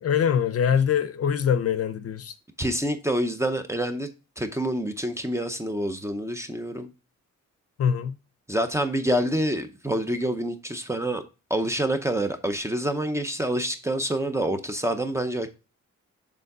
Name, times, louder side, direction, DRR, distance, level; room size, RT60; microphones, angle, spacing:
voice 1, 0.0-2.3 7.8-8.1, left 8 dB, 50° left, 0.6 m, -23 dB
voice 2, 2.6-4.1 4.4-6.9 8.5-11.2 11.5-15.5, right 1 dB, 10° right, 0.6 m, -27 dB
6.8 x 3.6 x 5.3 m
wide cardioid pair, 175°, 30 cm